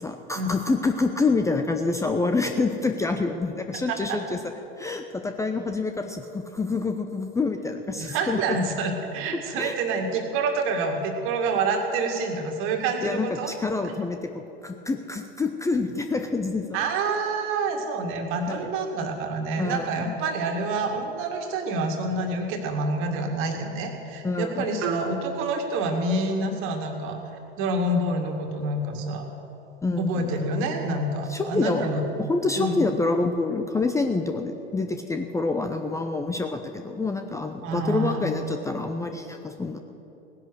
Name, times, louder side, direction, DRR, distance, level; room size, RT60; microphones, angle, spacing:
voice 1, 0.0-4.4 4.8-8.4 9.6-9.7 13.0-14.2 14.6-16.9 18.5-18.6 19.6-20.1 24.2-24.7 29.8-30.3 31.3-31.8 32.3-39.8, left 3 dB, 10° left, 6 dB, 0.7 m, -27 dB
voice 2, 3.9-4.2 8.0-13.5 16.7-27.2 27.6-29.3 30.0-32.1 32.5-32.9 37.6-38.2, right 2 dB, 45° right, 4 dB, 2.2 m, -27 dB
18.0 x 10.5 x 6.4 m, 3.0 s
figure-of-eight pair, 85°, 30 cm